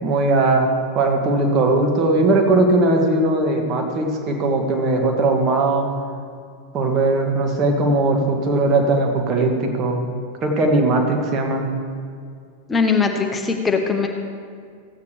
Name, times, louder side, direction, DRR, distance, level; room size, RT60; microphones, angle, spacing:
voice 1, 0.0-5.9 6.7-10.0 10.4-11.7, right 2 dB, 35° right, 3 dB, 1.4 m, -19 dB
voice 2, 12.7-14.1, left 5 dB, 15° left, 3 dB, 0.8 m, -20 dB
15.5 x 8.3 x 3.4 m, 2.2 s
figure-of-eight pair, 90°, 0 cm